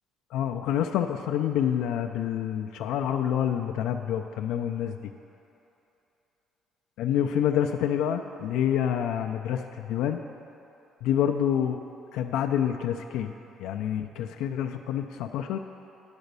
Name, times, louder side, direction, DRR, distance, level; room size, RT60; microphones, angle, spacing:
voice 1, 0.3-5.1 7.0-10.2 11.0-11.8 12.1-13.3 13.6-15.6, left 9 dB, 85° left, 5 dB, 0.3 m, -27 dB
10.5 x 4.0 x 6.7 m, 2.9 s
cardioid pair, 130°, 0 cm